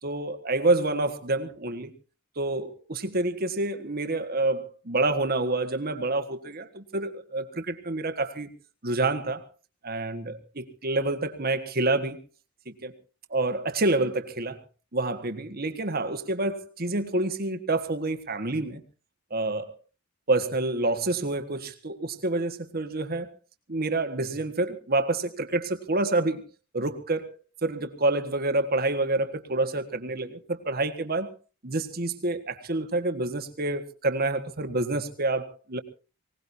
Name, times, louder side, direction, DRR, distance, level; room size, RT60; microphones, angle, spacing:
voice 1, 0.0-1.9 2.4-8.5 8.8-9.5 9.8-12.2 12.8-12.9 13.3-14.6 14.9-18.8 19.3-19.7 20.3-23.3 23.7-26.4 26.7-27.4 27.6-31.3 31.6-35.8, right 2 dB, 45° right, 8 dB, 1.5 m, -28 dB
24.5 x 18.0 x 2.7 m, 0.33 s
head